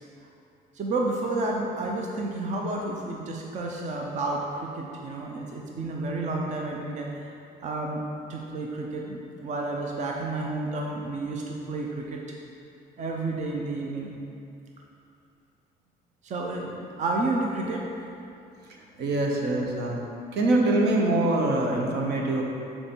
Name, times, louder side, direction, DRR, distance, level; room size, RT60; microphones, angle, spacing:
voice 1, 0.7-7.3 7.6-8.0 8.3-12.2 13.0-14.2 16.2-17.8, right 2 dB, 45° right, 0 dB, 0.7 m, -31 dB
voice 2, 19.0-20.0 20.3-22.4, right 2 dB, 75° right, 0 dB, 1.0 m, -24 dB
6.7 x 4.4 x 4.4 m, 2.6 s
cardioid pair, 110°, 17 cm